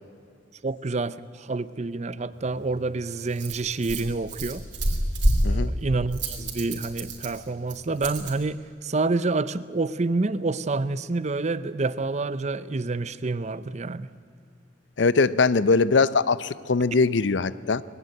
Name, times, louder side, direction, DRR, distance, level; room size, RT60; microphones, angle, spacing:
voice 1, 0.6-4.6 5.5-14.1, right 3 dB, 35° right, 0.6 m, -28 dB
Rattle, 2.3-8.4, right 1 dB, 65° right, 3.1 m, -29 dB
voice 2, 15.0-17.8, left 4 dB, 70° left, 0.6 m, -21 dB
22.0 x 16.0 x 10.0 m
head